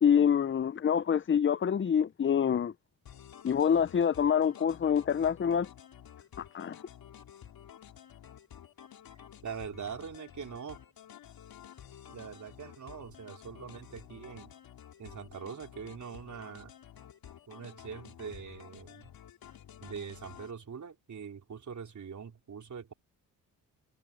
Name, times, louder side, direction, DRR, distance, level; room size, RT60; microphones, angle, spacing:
voice 1, 0.0-2.7 3.4-5.7 6.4-6.8, left 8 dB, 35° left, 0.7 m, -26 dB
sound 1, 3.1-20.5, left 9 dB, 70° left, 4.0 m, -51 dB
voice 2, 9.4-10.8 12.1-14.5 15.0-16.7 17.5-19.1 19.8-22.9, right 6 dB, 50° right, 3.7 m, -43 dB
supercardioid pair, 55°, 37 cm